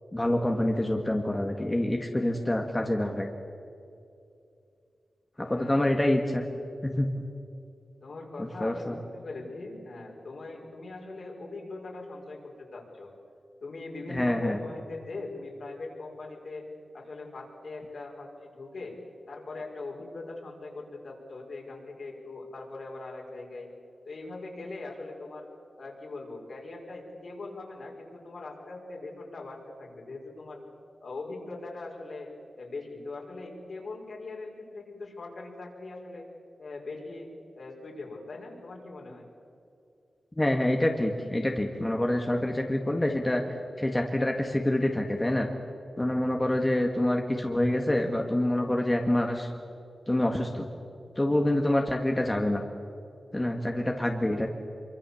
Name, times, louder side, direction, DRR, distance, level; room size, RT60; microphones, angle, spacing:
voice 1, 0.1-3.3 5.4-6.4 6.8-7.1 8.4-9.0 14.1-14.6 40.4-43.4 43.8-45.5 46.0-49.5 50.1-50.7 51.2-52.6 53.3-54.5, left 1 dB, 15° left, 2 dB, 1.9 m, -26 dB
voice 2, 5.5-5.9 8.0-13.1 13.6-16.6 16.9-19.0 19.3-23.7 24.0-25.5 25.8-30.6 31.0-32.3 32.6-36.3 36.6-39.3, left 3 dB, 65° left, -1 dB, 5.5 m, -41 dB
25.5 x 24.0 x 7.2 m, 2.5 s
wide cardioid pair, 85°, 0 cm